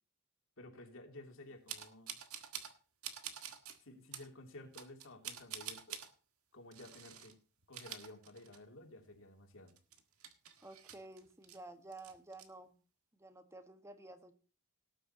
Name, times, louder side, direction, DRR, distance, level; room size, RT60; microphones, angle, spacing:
voice 1, 0.6-2.2 3.8-6.0 6.5-7.4 7.7-9.8, left 2 dB, 60° left, 3 dB, 2.9 m, -54 dB
sound 1, 1.7-2.8 3.0-3.8 4.1-4.3 4.7-6.1 6.7-7.3 7.6-8.8 9.1-9.2 9.7-11.6 11.9-12.5, right 9 dB, 70° right, 1.7 m, -47 dB
voice 2, 10.6-12.8 13.1-14.3, right 2 dB, 15° right, 8 dB, 1.4 m, -52 dB
18.5 x 9.1 x 2.9 m, 0.37 s
head